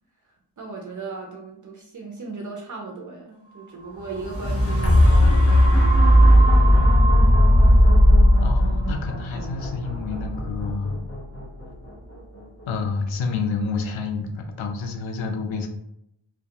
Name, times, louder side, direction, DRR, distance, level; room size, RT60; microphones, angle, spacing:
voice 1, 0.6-7.1, right 4 dB, 45° right, 0 dB, 0.5 m, -37 dB
sound 1, 4.0-12.1 12.7-12.8, equal, 30° left, 0.8 m, -17 dB
voice 2, 8.4-10.9 12.7-15.7, left 4 dB, 90° left, 4 dB, 0.5 m, -29 dB
2.3 x 2.1 x 2.8 m, 0.78 s
wide cardioid pair, 90°, 46 cm